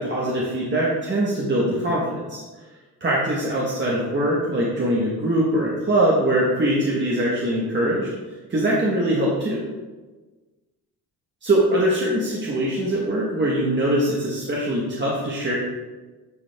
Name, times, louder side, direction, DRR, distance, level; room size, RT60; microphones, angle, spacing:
voice 1, 0.0-2.4 3.0-8.1 8.5-9.6 11.4-15.5, right 1 dB, 25° right, -5 dB, 1.1 m, -22 dB
9.6 x 4.9 x 3.3 m, 1.3 s
wide cardioid pair, 165°, 41 cm